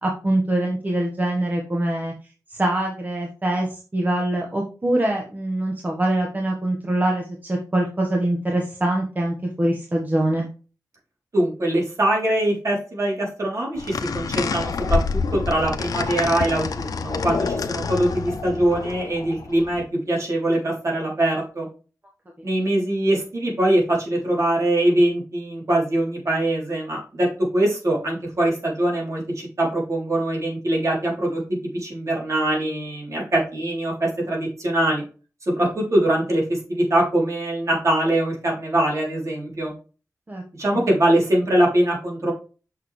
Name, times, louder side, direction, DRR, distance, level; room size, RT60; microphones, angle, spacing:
voice 1, 0.0-2.1 2.5-10.5 40.3-40.4 40.7-40.8, right 1 dB, 30° right, 0 dB, 1.4 m, -24 dB
voice 2, 11.3-21.7 22.4-27.3 27.5-31.4 31.7-35.0 35.6-39.7 40.6-42.3, right 1 dB, 55° right, -2 dB, 3.6 m, -22 dB
sound 1, 13.8-19.8, left 5 dB, 85° left, 0.7 m, -27 dB
6.6 x 6.4 x 3.3 m, 0.35 s
wide cardioid pair, 95°, 6 cm